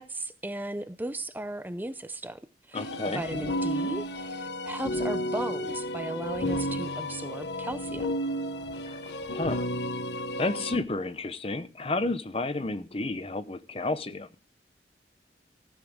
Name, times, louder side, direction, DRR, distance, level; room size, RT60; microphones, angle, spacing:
voice 1, 0.0-2.4 2.7-8.1, right 1 dB, 10° right, 0.5 m, -36 dB
sound 1, 2.7-10.8, equal, 75° left, 1.0 m, -32 dB
voice 2, 2.7-3.2 8.8-9.0 9.3-9.7 10.4-14.3, left 2 dB, 35° left, 0.8 m, -31 dB
15.5 x 10.0 x 3.7 m
head